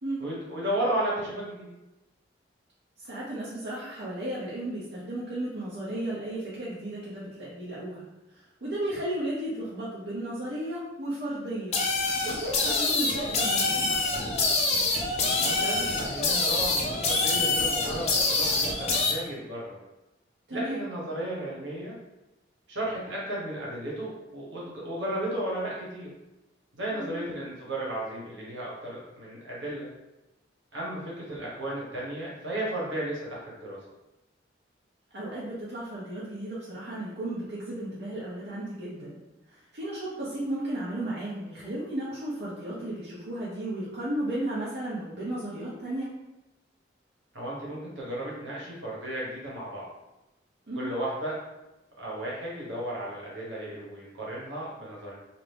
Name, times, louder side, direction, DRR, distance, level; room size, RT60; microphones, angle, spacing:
voice 1, 0.2-1.7 15.4-19.8 20.5-22.0 22.7-26.1 26.8-29.9 30.7-33.8 47.3-49.9 50.7-51.3 52.0-55.1, right 1 dB, 85° right, -5 dB, 1.2 m, -34 dB
voice 2, 3.0-11.8 12.2-13.8 20.5-20.8 26.9-27.2 35.1-39.2 39.5-46.1 50.7-51.0, right 1 dB, 60° right, -8 dB, 0.7 m, -34 dB
sound 1, 11.7-19.1, left 3 dB, 35° left, 0.4 m, -26 dB
2.8 x 2.5 x 3.3 m, 1.0 s
head